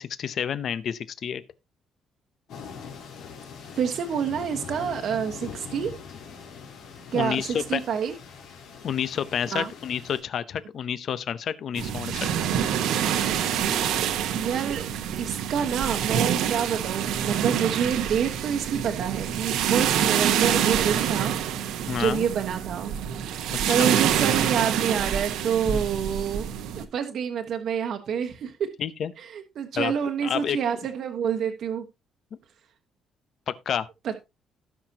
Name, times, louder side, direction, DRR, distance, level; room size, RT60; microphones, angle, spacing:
voice 1, 0.0-1.4 7.1-7.8 8.8-12.3 21.9-22.3 23.5-24.0 25.7-25.8 28.8-29.1 29.7-29.9 30.2-30.6 33.7-33.9, left 8 dB, 45° left, 0.7 m, -29 dB
sound 1, 2.5-10.2, left 6 dB, 75° left, 3.9 m, -42 dB
voice 2, 3.7-5.9 7.1-8.1 9.5-9.7 14.3-14.8 15.2-21.3 21.9-22.9 23.7-26.5 26.8-28.7 29.2-31.8 34.0-34.1, right 7 dB, 55° right, 1.2 m, -27 dB
sound 2, 11.8-26.8, right 9 dB, 90° right, 1.3 m, -26 dB
18.0 x 6.0 x 2.8 m
cardioid pair, 165°, 0 cm